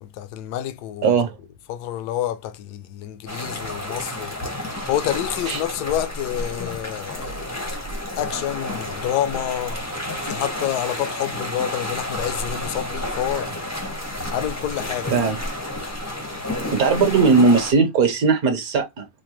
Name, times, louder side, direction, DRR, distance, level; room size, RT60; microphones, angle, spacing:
voice 1, 0.0-4.4 4.9-7.5 8.1-9.8 10.2-13.7 14.3-15.3, left 11 dB, 70° left, 0.9 m, -28 dB
voice 2, 1.0-1.4 5.5-5.6 15.1-15.4 16.7-19.1, right 4 dB, 60° right, 1.1 m, -18 dB
sound 1, 3.3-17.7, left 1 dB, 20° left, 0.4 m, -30 dB
4.8 x 2.2 x 3.0 m
omnidirectional pair, 2.1 m